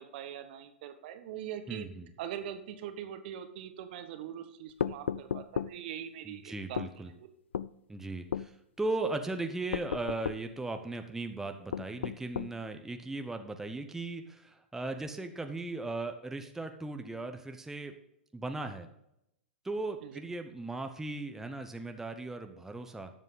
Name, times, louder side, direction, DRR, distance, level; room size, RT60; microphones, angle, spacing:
voice 1, 0.0-1.9 2.2-6.9 7.1-7.3 20.0-20.2, right 10 dB, 55° right, 9 dB, 1.3 m, -42 dB
voice 2, 1.7-2.1 6.2-7.1 7.9-17.9 18.3-18.9 19.6-23.1, right 2 dB, 5° right, 6 dB, 0.8 m, -37 dB
sound 1, 4.8-5.8 6.8-6.9 7.5-7.7 8.3-8.5 9.7-10.5 11.7-12.6, left 8 dB, 80° left, 0.3 m, -34 dB
13.0 x 7.3 x 4.0 m, 0.81 s
hypercardioid pair, 110°, 6 cm